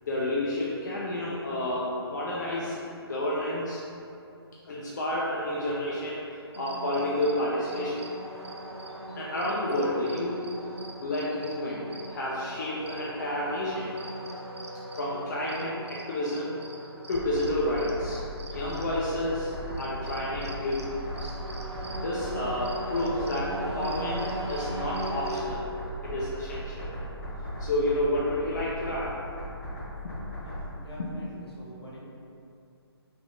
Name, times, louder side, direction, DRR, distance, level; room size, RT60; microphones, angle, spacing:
voice 1, 0.0-3.8 4.6-8.0 9.2-10.4 11.0-11.8 12.1-13.9 15.0-16.6 17.1-18.2 18.5-21.4 22.0-25.7 26.0-26.9 27.6-29.1, left 1 dB, 45° left, -6 dB, 0.4 m, -30 dB
sound 1, 6.5-25.4, right 1 dB, 80° right, 0.4 m, -39 dB
sound 2, 17.1-30.7, equal, 20° left, 1.0 m, -38 dB
voice 2, 30.4-32.0, left 1 dB, 70° left, -5 dB, 0.8 m, -46 dB
3.4 x 2.5 x 2.5 m, 2.6 s
figure-of-eight pair, 140°, 14 cm